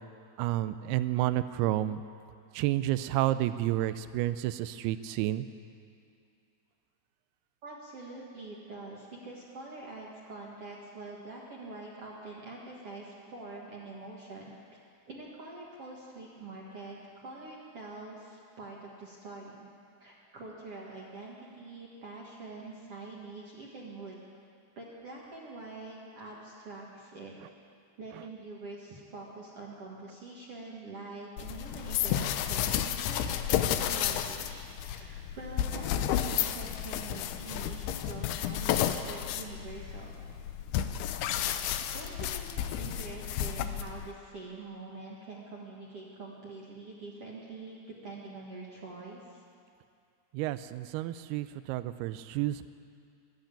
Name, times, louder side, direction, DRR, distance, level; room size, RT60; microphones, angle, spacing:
voice 1, 0.4-2.0 2.5-5.5 50.3-52.7, right 14 dB, 85° right, 13 dB, 2.6 m, -30 dB
voice 2, 7.6-14.6 15.1-19.7 20.0-24.2 24.8-27.3 28.0-40.1 41.9-49.4, right 3 dB, 50° right, -3 dB, 1.9 m, -45 dB
sound 1, 31.4-44.1, left 10 dB, 90° left, 2.7 m, -32 dB
13.5 x 12.0 x 8.8 m, 2.4 s
omnidirectional pair, 4.5 m